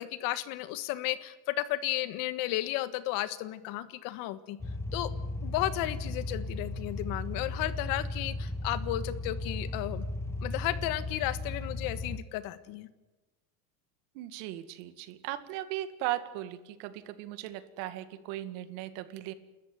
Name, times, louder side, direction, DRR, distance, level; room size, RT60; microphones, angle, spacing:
voice 1, 0.0-4.6 4.9-5.1 5.4-10.0 10.4-12.9, left 15 dB, 50° left, 14 dB, 1.5 m, -33 dB
sound 1, 4.6-12.2, left 2 dB, 5° left, 0.7 m, -36 dB
voice 2, 14.1-19.3, right 14 dB, 60° right, 12 dB, 2.1 m, -37 dB
29.5 x 13.5 x 9.1 m, 1.1 s
supercardioid pair, 135°, 43 cm